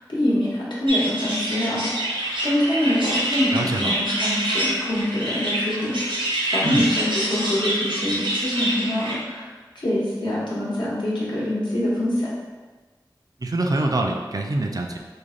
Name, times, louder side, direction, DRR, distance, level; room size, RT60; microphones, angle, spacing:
voice 1, 0.1-2.1 2.4-6.2 6.5-9.5 9.7-12.3, left 1 dB, 75° left, -7 dB, 1.1 m, -25 dB
sound 1, 0.9-9.1, right 1 dB, 85° right, 0.7 m, -26 dB
voice 2, 3.5-4.0 6.6-6.9 13.4-15.0, right 2 dB, 50° right, 2 dB, 0.4 m, -25 dB
3.3 x 2.2 x 3.7 m, 1.3 s
wide cardioid pair, 55°, 8 cm